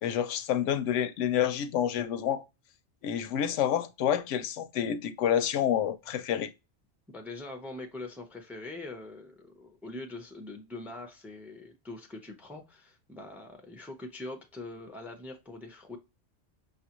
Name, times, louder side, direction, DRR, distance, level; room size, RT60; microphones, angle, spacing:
voice 1, 0.0-2.4 3.0-6.5, left 9 dB, 85° left, 0.9 m, -28 dB
voice 2, 7.1-16.0, left 2 dB, ahead, 0.5 m, -43 dB
5.5 x 2.4 x 2.9 m
omnidirectional pair, 1.2 m